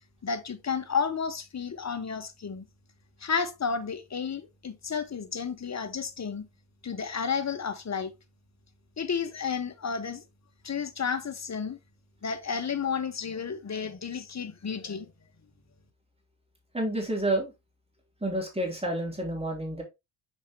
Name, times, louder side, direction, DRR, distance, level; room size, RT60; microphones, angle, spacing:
voice 1, 0.2-2.7 3.2-6.4 6.8-8.1 9.0-10.2 10.6-11.8 12.2-15.1, left 6 dB, 35° left, 1.2 m, -32 dB
voice 2, 16.7-17.5 18.2-19.8, right 1 dB, 10° right, 3.6 m, -29 dB
6.4 x 5.1 x 3.1 m
supercardioid pair, 65°, 49 cm